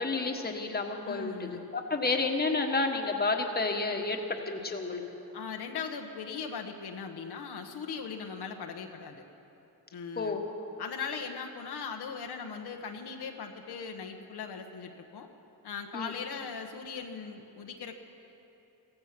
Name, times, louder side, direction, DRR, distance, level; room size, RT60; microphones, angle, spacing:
voice 1, 0.0-5.0 10.2-10.5 15.9-16.1, left 3 dB, 25° left, 3 dB, 1.5 m, -30 dB
voice 2, 1.0-1.7 5.3-9.2 9.9-10.4 10.8-15.3 15.6-17.9, left 6 dB, 75° left, 4 dB, 1.1 m, -39 dB
15.5 x 14.5 x 5.9 m, 3.0 s
cardioid pair, 80°, 40 cm